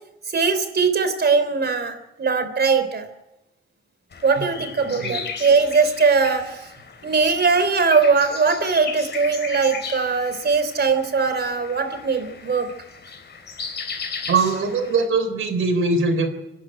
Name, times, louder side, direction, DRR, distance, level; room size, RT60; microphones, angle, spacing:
voice 1, 0.3-3.1 4.2-6.7 7.0-12.7, right 4 dB, 55° right, 10 dB, 3.4 m, -20 dB
sound 1, 4.1-15.1, left 5 dB, 55° left, 3.7 m, -36 dB
voice 2, 4.8-5.2 14.3-16.3, right 4 dB, 85° right, 9 dB, 3.4 m, -22 dB
26.0 x 11.5 x 9.1 m, 0.95 s
cardioid pair, 90°, 21 cm